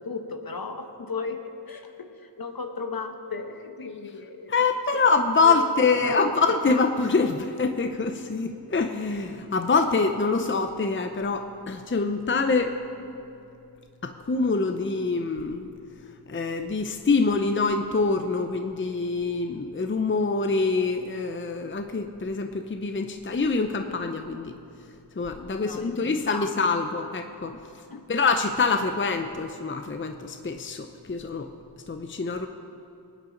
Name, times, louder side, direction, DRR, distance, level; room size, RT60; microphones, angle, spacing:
voice 1, 0.0-1.4 1.7-4.5 5.4-6.3 25.6-25.9 26.3-26.5 27.5-27.6 27.9-28.0, left 4 dB, 55° left, 6 dB, 1.1 m, -35 dB
voice 2, 4.5-12.7 14.0-15.7 16.3-24.5 25.2-27.5 28.1-31.5 31.9-32.5, left 4 dB, 30° left, 6 dB, 0.6 m, -25 dB
20.0 x 9.8 x 3.9 m, 2.7 s
wide cardioid pair, 55°, 43 cm